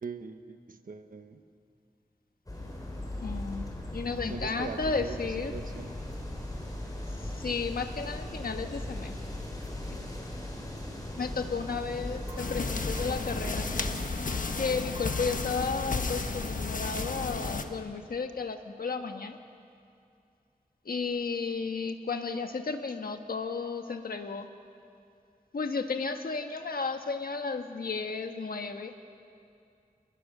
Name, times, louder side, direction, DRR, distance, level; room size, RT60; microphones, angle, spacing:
voice 1, 0.0-1.4 4.2-6.1, right 4 dB, 70° right, 8 dB, 1.3 m, -41 dB
sound 1, 2.5-13.9, left 1 dB, 25° left, 5.1 m, -38 dB
voice 2, 3.2-5.5 7.2-9.2 11.2-13.7 14.6-19.4 20.8-24.5 25.5-28.9, left 4 dB, 80° left, 6 dB, 1.5 m, -33 dB
sound 2, 12.3-17.6, right 1 dB, 30° right, 2.8 m, -50 dB
sound 3, 12.4-17.6, left 3 dB, 65° left, 1.4 m, -33 dB
29.5 x 21.0 x 6.8 m, 2.4 s
wide cardioid pair, 90°, 15 cm